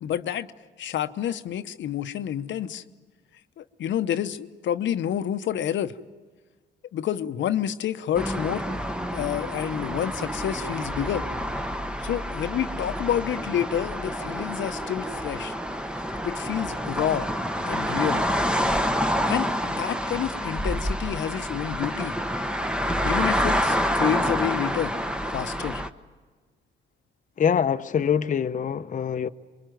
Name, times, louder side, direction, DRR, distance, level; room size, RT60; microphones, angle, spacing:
voice 1, 0.0-0.5 0.8-2.8 3.6-6.0 6.9-8.7 9.1-11.2 12.0-15.5 16.2-17.3 17.7-18.2 19.3-22.2 23.0-24.9 25.3-25.8, left 10 dB, 70° left, 0.9 m, -28 dB
sound 1, 8.1-25.9, equal, 5° right, 1.1 m, -28 dB
voice 2, 27.4-29.3, left 7 dB, 40° left, 0.8 m, -24 dB
23.5 x 23.0 x 9.2 m
cardioid pair, 90°, 20 cm